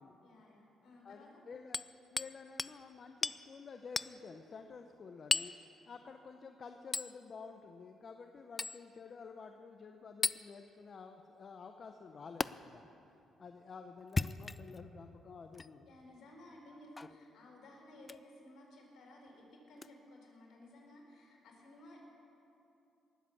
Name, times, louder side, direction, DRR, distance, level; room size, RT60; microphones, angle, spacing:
voice 1, 0.2-1.4 15.8-22.1, left 1 dB, 70° left, -2 dB, 4.2 m, -56 dB
voice 2, 1.0-1.8 2.1-5.5 5.9-12.9 13.4-15.9 17.0-17.1, left 5 dB, 45° left, 5 dB, 0.7 m, -51 dB
Hammer, 1.7-2.3 2.6-2.8 3.2-3.4 4.0-4.1 5.3-5.6 6.9-7.1 8.6-8.8 10.2-10.4 12.4-12.5 14.0-14.8 15.5-15.7 17.0-17.2 18.0-18.2 19.8-19.9, left 3 dB, 25° left, 0.3 m, -35 dB
19.5 x 7.6 x 7.2 m, 2.8 s
cardioid pair, 90°, 0 cm